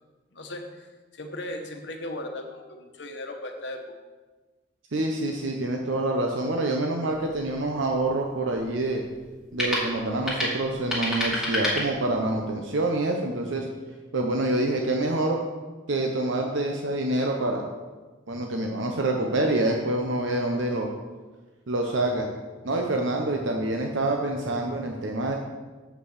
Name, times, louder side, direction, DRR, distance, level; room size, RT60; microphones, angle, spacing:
voice 1, 0.3-3.9, left 1 dB, 65° left, 4 dB, 1.1 m, -37 dB
voice 2, 4.9-9.0 9.5-13.7 14.1-15.4 15.9-17.6 18.3-20.9 21.7-22.3 22.6-25.4, right 2 dB, 85° right, 1 dB, 0.9 m, -26 dB
sound 1, 7.1-12.5, left 1 dB, 5° right, 2.1 m, -31 dB
7.8 x 5.3 x 6.6 m, 1.3 s
head